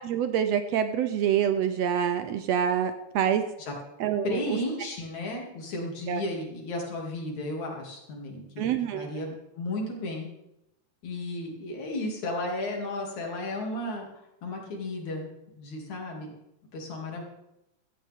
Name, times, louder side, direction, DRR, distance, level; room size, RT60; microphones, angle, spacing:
voice 1, 0.0-3.4 4.0-4.6 6.1-6.2 8.6-9.1, right 9 dB, 75° right, 9 dB, 1.7 m, -26 dB
voice 2, 4.2-8.6 8.9-10.3 11.0-14.1 14.4-16.3 16.7-17.2, left 2 dB, 70° left, -1 dB, 4.1 m, -34 dB
16.5 x 14.0 x 3.6 m, 0.87 s
omnidirectional pair, 3.4 m